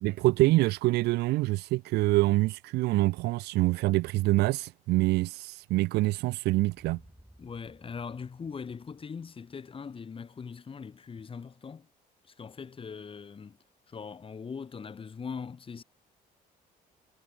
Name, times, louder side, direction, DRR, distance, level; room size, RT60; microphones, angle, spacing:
voice 1, 0.0-7.0, right 20 dB, 80° right, 0.5 m, -25 dB
sound 1, 6.7-10.7, equal, ahead, 7.4 m, -60 dB
voice 2, 7.4-11.9 12.3-13.6 13.9-15.8, left 6 dB, 30° left, 4.3 m, -41 dB
cardioid pair, 110°, 17 cm